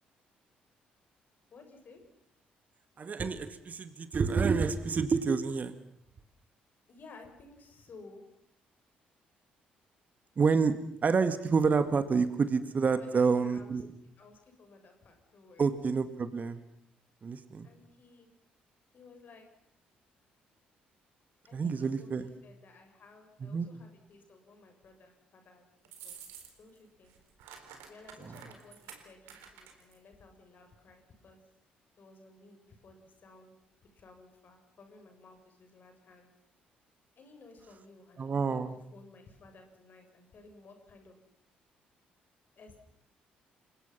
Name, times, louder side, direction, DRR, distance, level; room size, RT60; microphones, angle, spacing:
voice 1, 1.5-2.0 6.9-8.3 12.9-13.7 14.2-15.7 17.6-18.3 18.9-19.5 21.5-25.7 26.0-26.2 26.6-27.2 27.9-31.4 32.0-33.5 33.8-36.3 37.2-38.6 38.9-41.2 42.6-42.8, left 3 dB, 45° left, 5 dB, 7.2 m, -55 dB
voice 2, 3.0-5.7 10.4-10.8 11.0-13.9 15.6-16.6 17.2-17.7 21.5-22.3 23.4-23.7 28.2-28.4 38.2-38.7, right 5 dB, 40° right, 11 dB, 2.1 m, -28 dB
sound 1, 25.8-26.8 27.0-30.0, right 7 dB, 65° right, 4.0 m, -50 dB
29.5 x 24.5 x 5.8 m, 0.69 s
figure-of-eight pair, 45°, 4 cm